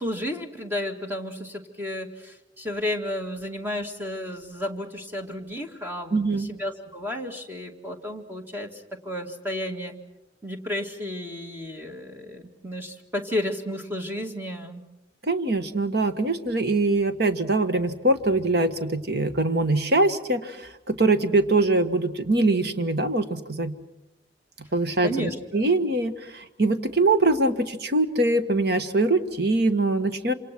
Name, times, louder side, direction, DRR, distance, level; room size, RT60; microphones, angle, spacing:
voice 1, 0.0-10.0 10.4-14.8 25.0-25.7, left 1 dB, 10° right, 3 dB, 2.1 m, -32 dB
voice 2, 6.1-6.5 15.2-23.7 24.7-30.3, right 2 dB, 60° right, 9 dB, 1.5 m, -23 dB
27.0 x 27.0 x 6.1 m, 0.92 s
head